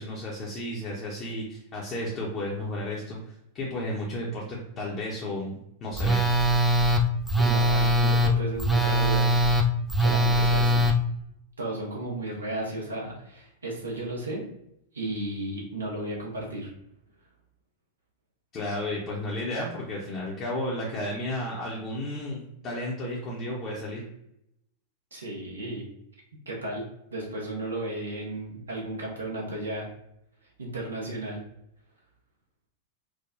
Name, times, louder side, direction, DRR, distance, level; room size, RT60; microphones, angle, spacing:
voice 1, 0.0-3.2 3.5-6.2 18.5-24.0, left 1 dB, 35° left, -5 dB, 0.8 m, -33 dB
Telephone, 6.0-10.9, equal, ahead, 0.4 m, -22 dB
voice 2, 7.3-9.3 10.0-10.9 11.6-14.5 14.9-16.7 25.1-25.9 26.5-26.8 27.1-29.9 30.6-31.4, right 1 dB, 80° right, -1 dB, 0.9 m, -34 dB
4.8 x 2.2 x 2.5 m, 0.78 s
figure-of-eight pair, 95°, 0 cm